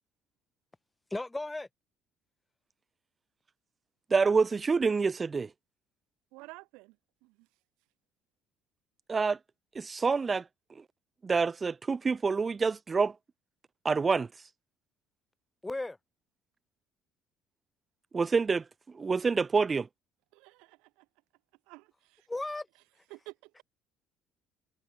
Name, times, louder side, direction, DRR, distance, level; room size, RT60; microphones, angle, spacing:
voice 1, 1.1-1.7 15.6-16.0 22.3-22.7, left 2 dB, 15° left, 2.0 m, -35 dB
voice 2, 4.1-5.5 9.1-9.4 9.8-10.4 11.2-13.1 13.8-14.3 18.1-18.6 18.9-19.9, right 4 dB, 30° right, 0.4 m, -27 dB
voice 3, 6.3-7.0 7.2-7.5 20.3-21.1 21.7-22.3 23.1-23.6, right 25 dB, 70° right, 3.1 m, -51 dB
hypercardioid pair, 60°, 0 cm